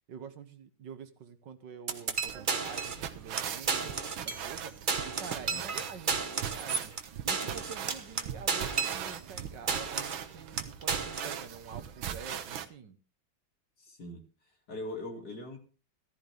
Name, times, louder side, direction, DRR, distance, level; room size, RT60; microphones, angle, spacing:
voice 1, 0.1-4.8 5.0-6.9 7.2-13.0, right 6 dB, 65° right, 10 dB, 1.8 m, -47 dB
sound 1, 1.9-3.1 3.4-3.5 3.7-4.6 4.9-9.4 9.7-10.3 10.6-11.4, right 5 dB, 35° right, 1.0 m, -33 dB
sound 2, 2.3-12.7, right 9 dB, 90° right, 1.9 m, -40 dB
voice 2, 5.3-5.6 13.8-14.2 14.7-15.6, left 1 dB, 50° left, 3 dB, 3.0 m, -41 dB
14.5 x 14.0 x 3.4 m, 0.34 s
omnidirectional pair, 2.1 m